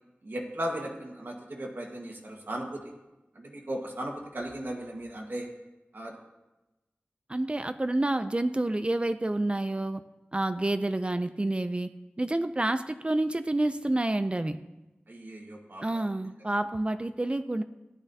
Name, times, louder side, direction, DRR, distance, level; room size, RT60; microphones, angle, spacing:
voice 1, 0.2-2.8 3.3-5.5 5.9-6.1 15.1-16.1, right 1 dB, 65° right, 0 dB, 1.6 m, -37 dB
voice 2, 7.3-10.0 10.3-11.9 12.2-14.6 15.8-17.6, right 1 dB, 30° right, 10 dB, 0.4 m, -28 dB
14.0 x 10.5 x 2.8 m, 1.0 s
wide cardioid pair, 65°, 4 cm